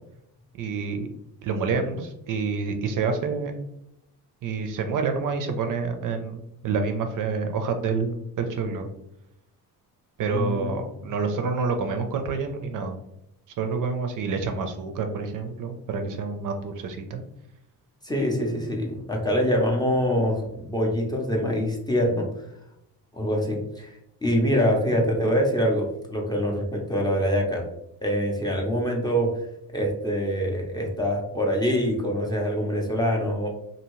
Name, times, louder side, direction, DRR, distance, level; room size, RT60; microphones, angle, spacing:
voice 1, 0.6-1.1 1.4-3.6 4.4-8.9 10.2-13.0 13.6-17.2, right 4 dB, 55° right, 6 dB, 0.5 m, -28 dB
voice 2, 10.3-11.0 18.0-22.2 23.1-23.9 24.2-27.6 28.0-29.3 29.7-33.5, equal, 10° left, 0 dB, 0.5 m, -24 dB
2.7 x 2.6 x 3.0 m, 0.80 s
cardioid pair, 130°, 39 cm